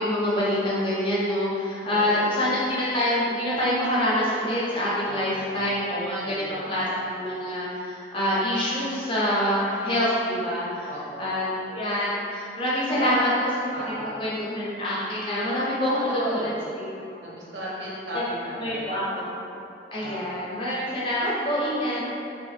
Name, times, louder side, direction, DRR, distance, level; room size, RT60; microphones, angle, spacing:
voice 1, 0.0-6.2 6.5-10.9 11.2-13.8 14.2-16.9 17.1-17.2 18.1-18.2 18.6-19.4 19.9-22.0, left 1 dB, 30° left, -8 dB, 0.6 m, -26 dB
voice 2, 1.9-2.5 5.0-7.2 10.9-11.4 12.9-13.2 13.7-14.4 16.0-16.6 17.2-19.2 20.0-20.5, right 1 dB, 90° right, -6 dB, 0.7 m, -36 dB
3.0 x 2.1 x 3.1 m, 2.7 s
head